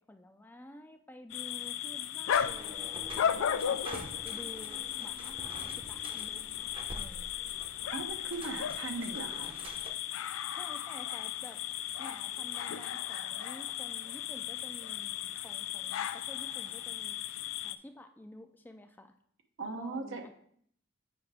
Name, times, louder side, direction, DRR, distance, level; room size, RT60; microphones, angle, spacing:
voice 1, 0.0-6.5 6.9-7.3 10.5-17.2 17.6-19.1 19.8-20.3, left 1 dB, 10° left, 6 dB, 0.3 m, -51 dB
sound 1, 1.3-17.8, left 9 dB, 85° left, 0.4 m, -36 dB
sound 2, 2.3-9.9, right 1 dB, 30° right, 0.7 m, -47 dB
voice 2, 7.9-9.5 19.6-20.3, right 3 dB, 80° right, 5 dB, 0.9 m, -38 dB
7.7 x 5.2 x 3.4 m, 0.64 s
head